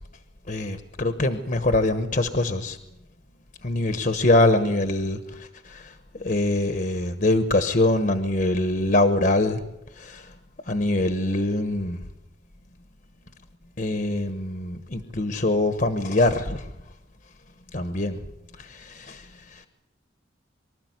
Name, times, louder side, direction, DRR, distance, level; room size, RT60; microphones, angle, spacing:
voice 1, 0.5-2.8 3.6-9.6 9.9-10.3 10.6-12.0 13.8-16.7 17.7-18.2 18.6-19.7, left 2 dB, 45° left, 8 dB, 1.2 m, -24 dB
24.5 x 13.5 x 9.5 m, 0.91 s
head